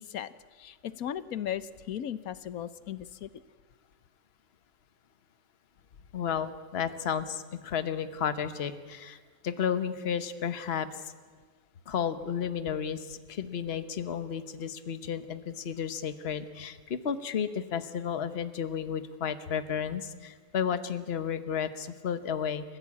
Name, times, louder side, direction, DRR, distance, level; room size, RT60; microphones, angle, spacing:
voice 1, 0.0-3.3, left 10 dB, 70° left, 14 dB, 1.3 m, -37 dB
voice 2, 6.1-9.2 9.4-11.1 11.9-22.8, left 7 dB, 45° left, 11 dB, 1.2 m, -32 dB
29.5 x 15.5 x 8.5 m, 1.5 s
omnidirectional pair, 1.6 m